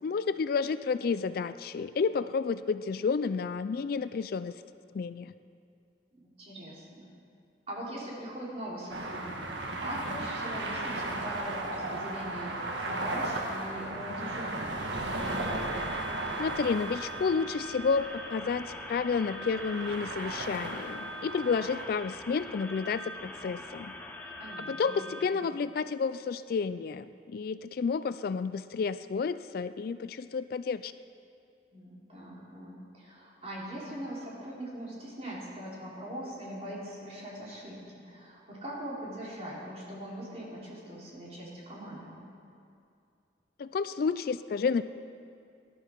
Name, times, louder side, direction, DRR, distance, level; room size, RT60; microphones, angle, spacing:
voice 1, 0.0-4.5 4.9-5.3 16.4-23.9 24.6-30.9 43.6-44.8, left 5 dB, 55° left, 13 dB, 0.3 m, -31 dB
voice 2, 6.1-7.1 7.7-12.6 12.9-14.8 24.4-25.4 31.7-42.2, equal, 35° right, -6 dB, 3.6 m, -41 dB
sound 1, 8.9-21.9, right 2 dB, 75° right, 1.4 m, -36 dB
sound 2, 15.2-25.2, left 1 dB, 10° left, 0.8 m, -43 dB
19.5 x 11.5 x 4.6 m, 2.4 s
head